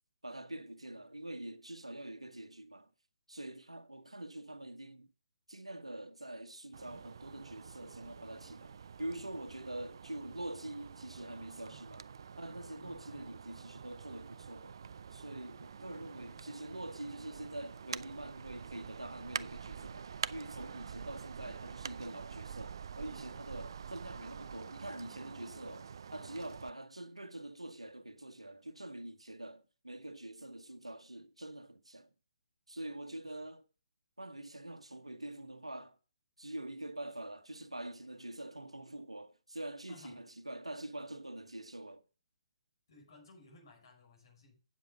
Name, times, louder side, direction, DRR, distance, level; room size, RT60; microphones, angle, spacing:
voice 1, 0.2-2.9 3.3-5.1 5.5-12.1 12.4-14.8 15.1-32.1 32.7-33.6 34.2-36.0 36.4-42.0, right 1 dB, 80° right, 1.1 m, -45 dB
sound 1, 6.7-26.7, right 6 dB, 50° right, 0.4 m, -47 dB
voice 2, 12.7-13.3 23.3-23.4 33.2-33.3 39.9-40.2 42.9-44.6, left 2 dB, 50° left, 5.7 m, -59 dB
8.5 x 7.6 x 5.3 m
figure-of-eight pair, 135°, 3 cm